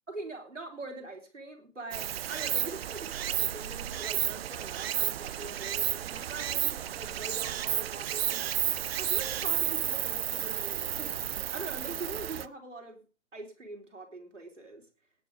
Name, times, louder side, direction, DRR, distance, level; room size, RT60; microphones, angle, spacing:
voice 1, 0.1-8.4 8.8-11.2 11.5-13.0 13.3-14.8, right 2 dB, 85° right, 2 dB, 4.1 m, -43 dB
Stream, 1.9-12.5, right 11 dB, 55° right, 0.8 m, -32 dB
18.0 x 9.2 x 5.1 m, 0.37 s
figure-of-eight pair, 105°, 36 cm